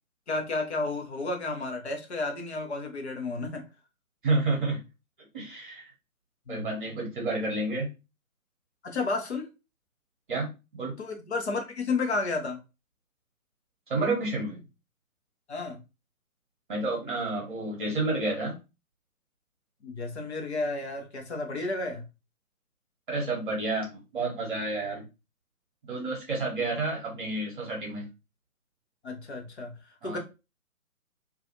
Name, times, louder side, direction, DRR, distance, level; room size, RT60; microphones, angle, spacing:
voice 1, 0.3-3.6 6.5-6.7 8.8-9.5 11.0-12.6 15.5-15.8 19.8-22.0 29.0-29.7 30.0-30.2, left 3 dB, 50° left, 0.8 m, -32 dB
voice 2, 4.2-4.8 5.3-5.9 6.5-7.9 10.3-11.0 13.9-14.6 16.7-18.5 23.1-25.0 25.8-28.1 30.0-30.2, right 2 dB, 35° right, 0.9 m, -30 dB
2.4 x 2.4 x 2.7 m
figure-of-eight pair, 135°, 43 cm